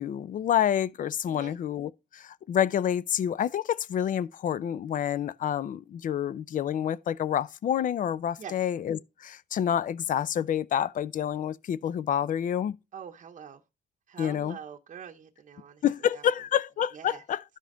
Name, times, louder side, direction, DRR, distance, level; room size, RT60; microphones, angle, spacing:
voice 1, 0.0-12.8 14.2-14.6 15.8-17.4, left 9 dB, 50° left, 0.5 m, -28 dB
voice 2, 12.9-13.6 14.1-15.8 16.1-16.3 16.9-17.2, right 8 dB, 45° right, 0.9 m, -44 dB
12.5 x 5.3 x 3.8 m
cardioid pair, 135°, 18 cm